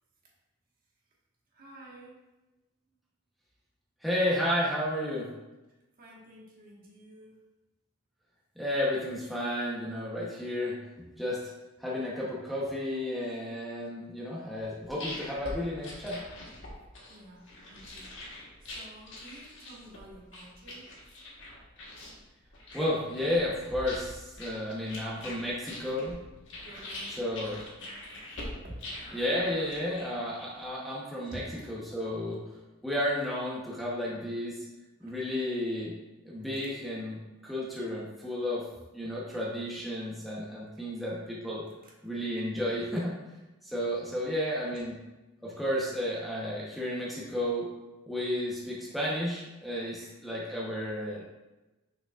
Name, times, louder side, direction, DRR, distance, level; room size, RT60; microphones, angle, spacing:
voice 1, 1.5-2.2 6.0-7.4 17.1-20.9 25.2-26.1 26.6-27.5 27.8-28.2 28.6-29.1 31.4-31.7 35.0-35.2 41.8-41.9, right 1 dB, 50° right, -4 dB, 1.6 m, -51 dB
voice 2, 4.0-5.3 8.6-10.8 11.2-11.4 11.8-16.2 22.7-26.2 27.2-27.6 29.1-31.4 31.7-32.4 32.8-34.6 35.0-35.9 36.2-38.6 38.9-41.6 42.0-43.1 43.6-45.0 45.4-47.7 48.1-51.2, left 1 dB, ahead, -7 dB, 0.9 m, -32 dB
sound 1, 14.6-30.7, left 1 dB, 70° left, 1.5 m, -44 dB
6.3 x 6.0 x 2.5 m, 1.1 s
head